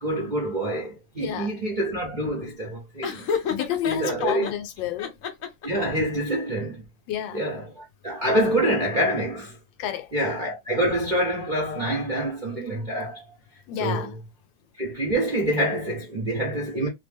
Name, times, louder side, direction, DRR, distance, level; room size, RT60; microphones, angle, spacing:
voice 1, 0.0-3.3 3.8-4.5 5.6-6.8 7.3-9.6 10.1-13.2 13.8-14.1 14.8-16.9, right 1 dB, 40° right, 0.7 m, -26 dB
voice 2, 1.2-1.5 3.5-5.1 7.1-7.4 9.8-10.1 13.7-14.2, left 10 dB, 80° left, 1.3 m, -30 dB
Laughter, 3.0-4.5 5.0-5.9, left 7 dB, 60° left, 1.0 m, -29 dB
3.1 x 2.0 x 3.4 m
omnidirectional pair, 2.0 m